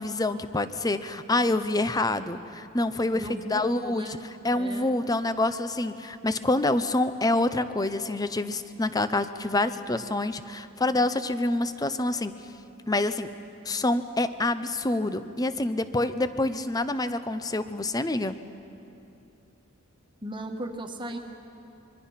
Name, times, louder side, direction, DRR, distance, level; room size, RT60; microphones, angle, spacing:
voice 1, 0.0-3.2 3.5-4.1 4.4-12.3 12.9-13.3 13.6-18.4, left 2 dB, 20° left, 12 dB, 0.7 m, -27 dB
voice 2, 3.1-4.2 4.5-4.9 20.2-21.2, right 1 dB, 25° right, 4 dB, 1.5 m, -36 dB
24.5 x 23.0 x 5.8 m, 2.8 s
head